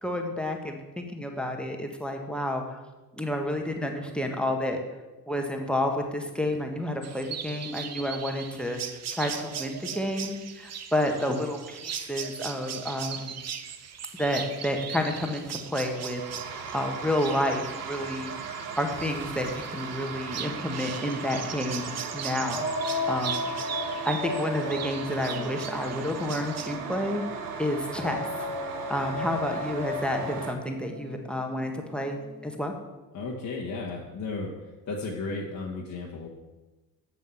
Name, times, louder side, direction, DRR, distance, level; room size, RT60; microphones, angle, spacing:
voice 1, 0.0-2.8 3.1-4.8 5.3-13.4 14.2-22.7 23.1-23.5 24.0-27.2 27.6-32.2 32.4-32.7, left 1 dB, ahead, 4 dB, 1.5 m, -30 dB
sound 1, 7.0-26.8, right 8 dB, 35° right, 0.8 m, -39 dB
sound 2, 15.8-30.5, right 5 dB, 70° right, 1.3 m, -37 dB
sound 3, 22.5-27.1 28.0-32.7, left 2 dB, 75° left, 2.2 m, -36 dB
voice 2, 33.1-34.5 34.9-36.3, left 3 dB, 35° left, -2 dB, 1.5 m, -34 dB
7.3 x 7.3 x 5.8 m, 1.1 s
figure-of-eight pair, 55°, 48 cm